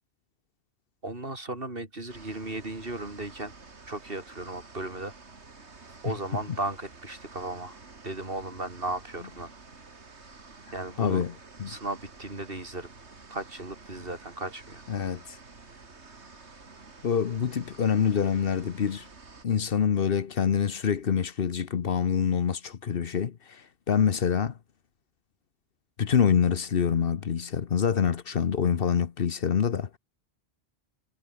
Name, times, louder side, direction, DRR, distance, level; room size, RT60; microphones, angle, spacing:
voice 1, 1.0-3.5 3.9-5.1 6.0-7.8 8.0-9.5 10.7-11.2 11.7-12.9 13.3-14.8, right 2 dB, 55° right, 4.4 m, -36 dB
sound 1, 2.1-19.4, right 3 dB, 90° right, 2.8 m, -50 dB
voice 2, 11.0-11.3 11.6-11.7 14.9-15.4 17.0-19.1 19.4-24.6 26.0-30.0, left 7 dB, 60° left, 1.1 m, -26 dB
omnidirectional pair, 1.1 m